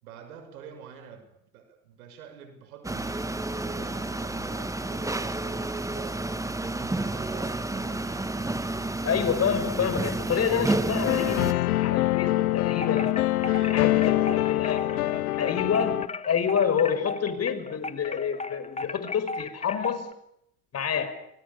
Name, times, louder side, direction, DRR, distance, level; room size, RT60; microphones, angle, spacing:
voice 1, 0.0-3.3 3.6-8.2 13.4-15.9, right 6 dB, 80° right, 8 dB, 6.6 m, -46 dB
sound 1, 2.8-11.5, right 2 dB, 5° right, 1.8 m, -30 dB
voice 2, 9.0-13.2 13.7-14.8 15.4-20.1 20.7-21.2, left 7 dB, 35° left, 10 dB, 5.6 m, -28 dB
sound 2, 11.0-16.1, left 17 dB, 85° left, 1.1 m, -24 dB
Wind chime, 12.8-20.1, left 4 dB, 15° left, 2.1 m, -36 dB
27.5 x 24.5 x 6.9 m, 0.77 s
hypercardioid pair, 90°, 43 cm